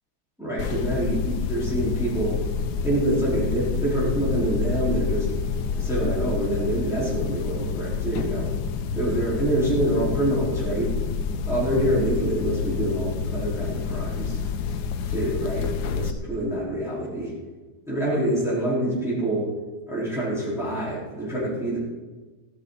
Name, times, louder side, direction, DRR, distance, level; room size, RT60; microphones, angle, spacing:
voice 1, 0.4-2.4 2.8-5.3 5.8-8.5 8.9-10.9 11.4-14.4 15.1-17.3 17.9-19.5 19.9-21.8, right 1 dB, ahead, -9 dB, 4.6 m, -26 dB
sound 1, 0.6-16.1, left 6 dB, 85° left, 1.3 m, -28 dB
16.0 x 12.5 x 4.2 m, 1.3 s
omnidirectional pair, 1.7 m